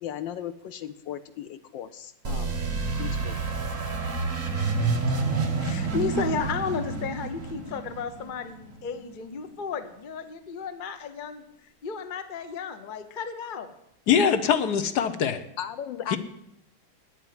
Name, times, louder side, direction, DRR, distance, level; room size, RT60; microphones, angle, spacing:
voice 1, 0.0-2.5 3.0-3.4 15.6-16.2, left 9 dB, 75° left, 13 dB, 1.3 m, -36 dB
sound 1, 2.2-8.8, right 4 dB, 40° right, 2.0 m, -29 dB
voice 2, 5.6-11.4 11.8-13.7, left 5 dB, 40° left, 9 dB, 0.7 m, -33 dB
voice 3, 14.1-15.4 16.1-16.2, left 7 dB, 60° left, 10 dB, 1.3 m, -22 dB
9.5 x 8.9 x 9.3 m, 0.78 s
omnidirectional pair, 2.2 m